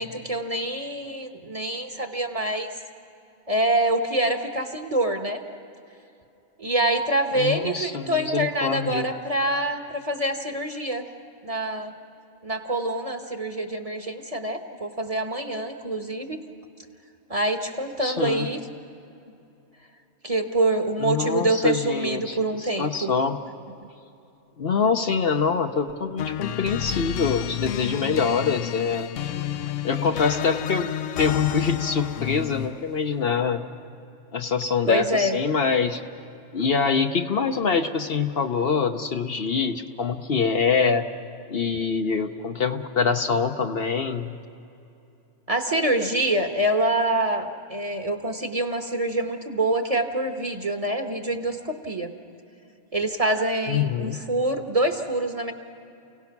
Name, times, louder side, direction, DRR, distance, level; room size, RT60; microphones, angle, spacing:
voice 1, 0.0-2.7 3.5-5.4 6.6-11.1 11.4-11.9 12.4-16.4 17.3-18.6 20.2-23.1 34.9-35.4 45.5-52.1 52.9-55.5, right 1 dB, 30° right, 5 dB, 1.2 m, -25 dB
voice 2, 7.3-9.1 18.0-18.5 21.0-23.4 24.6-29.1 29.8-30.9 31.2-33.6 34.3-36.0 36.5-41.1 41.5-44.3 53.7-54.2, left 5 dB, 55° left, 6 dB, 1.0 m, -25 dB
sound 1, 26.2-32.9, left 11 dB, 85° left, 1.0 m, -30 dB
29.0 x 17.0 x 6.0 m, 2.7 s
omnidirectional pair, 1.2 m